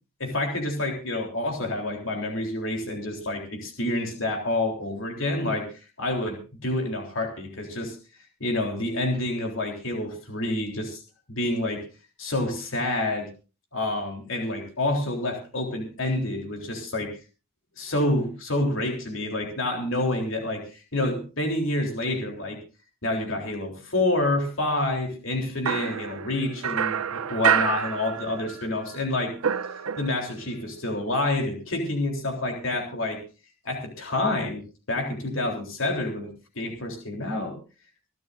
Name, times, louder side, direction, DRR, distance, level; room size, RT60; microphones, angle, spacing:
voice 1, 0.2-8.0 8.4-11.0 11.3-11.8 12.2-13.3 13.7-17.1 17.8-22.6 23.0-29.4 30.0-33.2 33.6-36.3 36.6-37.6, left 2 dB, 60° left, 2 dB, 3.6 m, -28 dB
sound 1, 25.7-28.7 28.9-30.4, right 8 dB, 80° right, 0.7 m, -27 dB
26.5 x 12.5 x 2.6 m, 0.32 s
head